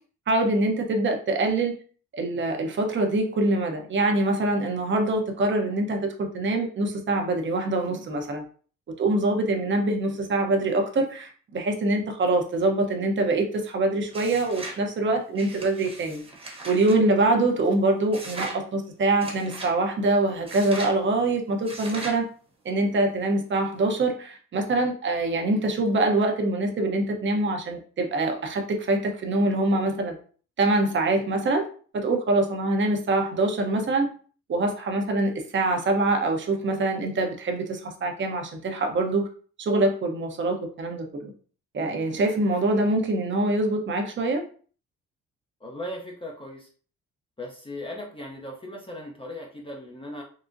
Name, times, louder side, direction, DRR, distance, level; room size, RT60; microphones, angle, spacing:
voice 1, 0.3-1.7 2.1-8.4 9.0-16.2 16.6-22.3 22.6-30.1 30.6-31.7 31.9-34.1 34.5-39.3 39.6-41.3 41.7-44.4, right 2 dB, 40° right, 3 dB, 0.7 m, -24 dB
sound 1, 14.1-14.8 15.3-17.0 18.1-18.6 19.2-19.7 20.5-21.0 21.6-22.2, right 2 dB, 20° right, 1.0 m, -38 dB
voice 2, 45.6-46.7 47.4-50.2, left 1 dB, 20° left, 0 dB, 0.6 m, -37 dB
3.8 x 2.0 x 2.5 m, 0.42 s
cardioid pair, 90°, 30 cm